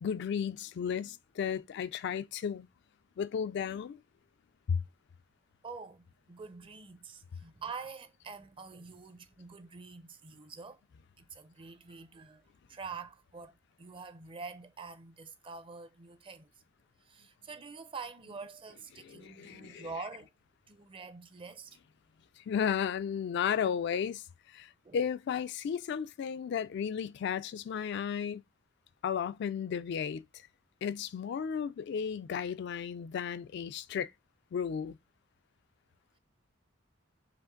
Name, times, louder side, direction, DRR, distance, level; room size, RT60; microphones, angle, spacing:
voice 1, 0.0-2.7 3.2-4.0 4.7-4.8 19.0-19.9 22.4-28.4 29.0-30.5 30.8-34.1 34.5-35.0, left 7 dB, 60° left, 0.3 m, -34 dB
voice 2, 5.6-10.8 11.2-12.4 12.7-16.5 17.0-20.3 20.7-21.8 24.8-25.0, right 4 dB, 25° right, 0.5 m, -46 dB
5.0 x 2.5 x 3.8 m
head